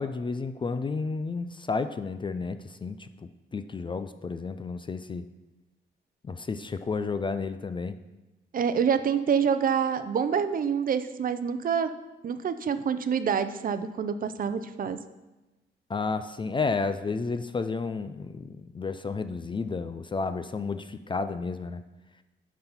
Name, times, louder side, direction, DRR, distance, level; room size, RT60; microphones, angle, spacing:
voice 1, 0.0-5.3 6.2-7.9 15.9-21.8, left 4 dB, 25° left, 10 dB, 0.3 m, -32 dB
voice 2, 8.5-11.9 12.2-15.0, right 7 dB, 50° right, 11 dB, 0.5 m, -27 dB
11.0 x 4.1 x 5.6 m, 1.1 s
wide cardioid pair, 135°, 19 cm